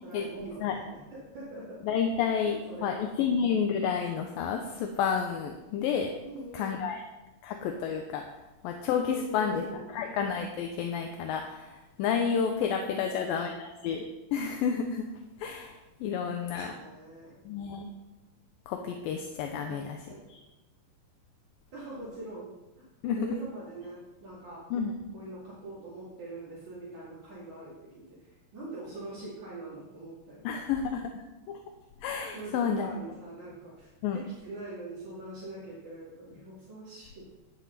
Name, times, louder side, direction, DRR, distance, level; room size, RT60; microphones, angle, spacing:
voice 1, 0.0-1.8 2.5-3.3 6.2-6.8 9.1-9.9 12.9-13.8 16.4-17.3 19.6-19.8 20.1-20.2 21.7-22.5 23.2-24.6 25.1-30.6 32.3-37.4, right 1 dB, 55° right, -9 dB, 4.0 m, -43 dB
voice 2, 1.8-6.1 6.5-7.0 7.4-8.2 8.6-9.7 9.9-15.0 15.4-16.8 17.5-17.9 18.7-20.0 20.3-20.4 23.0-23.3 24.7-25.0 30.4-31.0 31.5-31.6 32.0-32.9 34.0-34.2, left 7 dB, 80° left, 4 dB, 2.5 m, -30 dB
11.5 x 9.4 x 4.1 m, 1.1 s
omnidirectional pair, 4.2 m